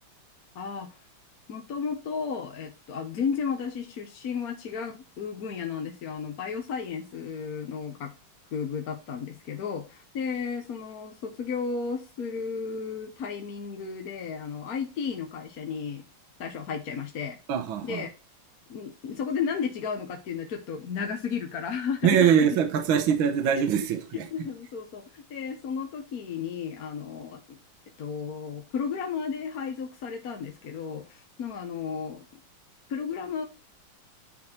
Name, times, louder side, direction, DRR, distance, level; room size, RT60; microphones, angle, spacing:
voice 1, 0.5-0.9 1.5-8.1 8.5-16.0 16.4-17.4 17.8-18.1 18.7-22.6 23.5-23.6 24.1-27.6 28.0-32.2 32.9-33.4, left 6 dB, 55° left, 1.2 m, -33 dB
voice 2, 17.5-18.1 22.0-24.3, right 8 dB, 70° right, 1.7 m, -23 dB
9.7 x 4.2 x 4.2 m
omnidirectional pair, 2.4 m